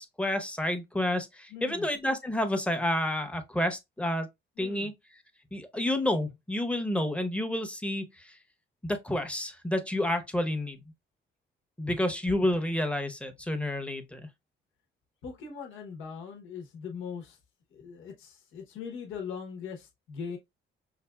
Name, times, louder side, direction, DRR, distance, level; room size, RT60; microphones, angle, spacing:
voice 1, 0.0-4.3 4.6-4.9 5.5-8.3 8.8-10.8 11.8-14.2, left 1 dB, 5° left, 0.8 m, -30 dB
voice 2, 1.5-1.9 4.6-4.9 15.2-17.4 17.7-20.4, left 6 dB, 85° left, 1.1 m, -40 dB
5.7 x 2.5 x 2.3 m
cardioid pair, 90°, 20 cm